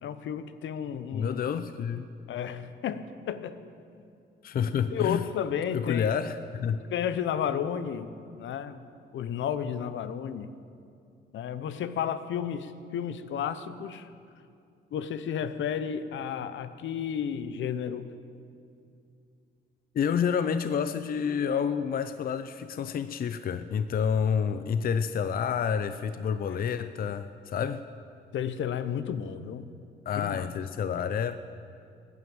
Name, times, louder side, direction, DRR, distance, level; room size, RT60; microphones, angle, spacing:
voice 1, 0.0-1.4 2.3-3.6 4.9-6.1 6.9-8.8 9.1-10.5 11.3-14.1 14.9-18.1 26.5-26.6 28.3-29.7 30.2-30.4, left 8 dB, 70° left, 12 dB, 0.9 m, -32 dB
voice 2, 1.1-2.1 4.4-5.2 5.7-6.8 19.9-27.8 30.1-31.4, left 7 dB, 45° left, 12 dB, 0.6 m, -29 dB
15.0 x 9.6 x 8.9 m, 2.5 s
cardioid pair, 90°, 20 cm